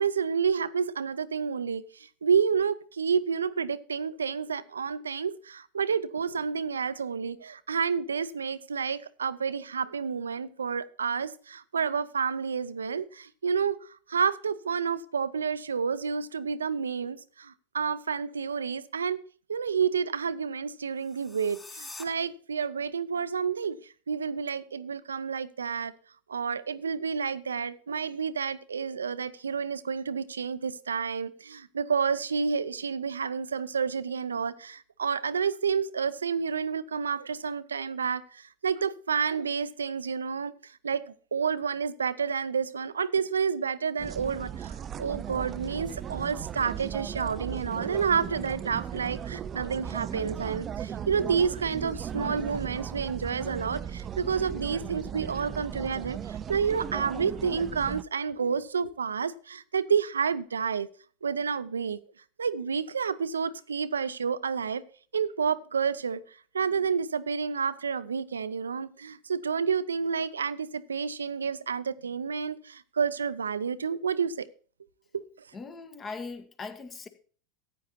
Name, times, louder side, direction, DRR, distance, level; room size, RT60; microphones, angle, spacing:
voice 1, 0.0-19.2 19.5-25.9 26.3-60.9 61.2-62.0 62.4-64.8 65.1-74.5 75.1-75.3, right 6 dB, 85° right, 0.6 m, -30 dB
sound 1, 21.0-22.0, left 2 dB, 10° left, 3.6 m, -45 dB
sound 2, 44.0-58.0, right 9 dB, 35° right, 0.4 m, -37 dB
voice 2, 75.5-77.1, left 4 dB, 30° left, 1.6 m, -40 dB
14.5 x 9.4 x 2.9 m
hypercardioid pair, 90°, 0 cm